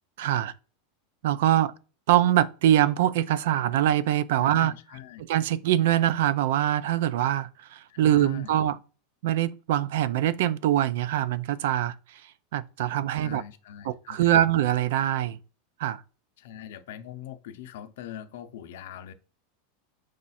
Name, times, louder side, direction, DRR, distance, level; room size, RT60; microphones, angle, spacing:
voice 1, 0.2-0.5 1.2-1.7 2.1-4.7 5.3-8.8 9.2-12.2 12.5-13.4 13.9-15.4 15.8-16.0, right 12 dB, 60° right, 0.3 m, -23 dB
voice 2, 4.4-5.2 7.9-8.6 13.1-14.4 16.4-19.1, left 10 dB, 65° left, 0.5 m, -42 dB
4.7 x 2.4 x 4.1 m
supercardioid pair, 175°, 0 cm